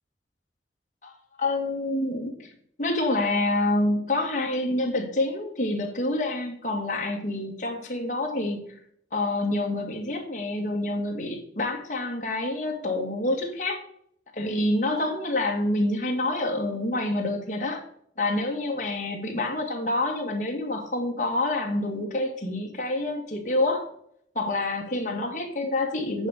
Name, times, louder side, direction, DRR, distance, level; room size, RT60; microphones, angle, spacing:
voice 1, 1.4-2.5 2.8-8.6 9.1-13.8 14.3-17.8 18.2-23.9 24.4-26.3, left 2 dB, 45° left, 2 dB, 2.0 m, -27 dB
9.5 x 5.0 x 6.5 m, 0.66 s
head